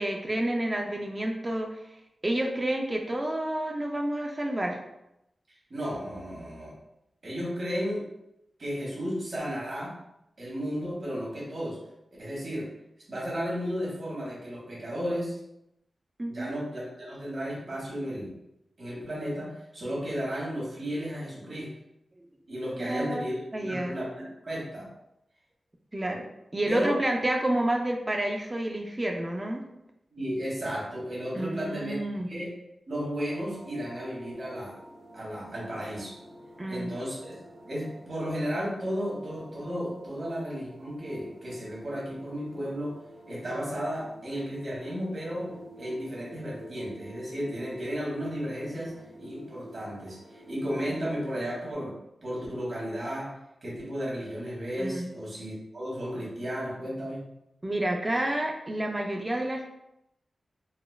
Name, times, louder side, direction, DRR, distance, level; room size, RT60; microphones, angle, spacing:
voice 1, 0.0-1.8 2.2-4.8 16.2-16.5 22.8-23.2 23.5-24.0 25.9-26.3 26.5-29.6 31.3-32.3 36.6-36.9 54.8-55.1 57.6-59.6, right 1 dB, 20° right, 2 dB, 0.3 m, -29 dB
voice 2, 5.7-6.7 7.2-8.0 8.6-9.9 10.4-11.8 12.2-12.7 13.1-15.4 16.3-18.3 18.8-21.7 22.5-24.9 26.7-26.9 30.1-32.5 32.9-34.8 35.1-36.1 36.7-37.4 37.6-43.0 43.3-45.5 45.8-53.3 53.6-57.2, equal, 45° right, -5 dB, 1.2 m, -34 dB
sound 1, 33.3-51.7, right 1 dB, 75° right, 0.8 m, -49 dB
4.0 x 2.3 x 2.2 m, 0.85 s
wide cardioid pair, 165°, 0 cm